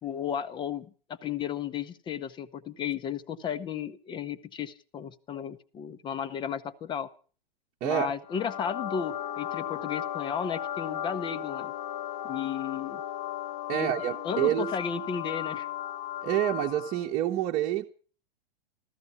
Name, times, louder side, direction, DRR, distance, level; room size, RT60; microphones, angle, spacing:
voice 1, 0.0-7.1 7.8-11.7 12.2-13.0 13.7-13.9 14.2-15.7, left 8 dB, 15° left, 0.7 m, -34 dB
sound 1, 8.2-17.1, left 11 dB, 35° left, 1.0 m, -36 dB
voice 2, 13.7-14.7 16.2-17.9, right 13 dB, 30° right, 1.1 m, -27 dB
14.5 x 14.0 x 7.0 m
figure-of-eight pair, 105°, 29 cm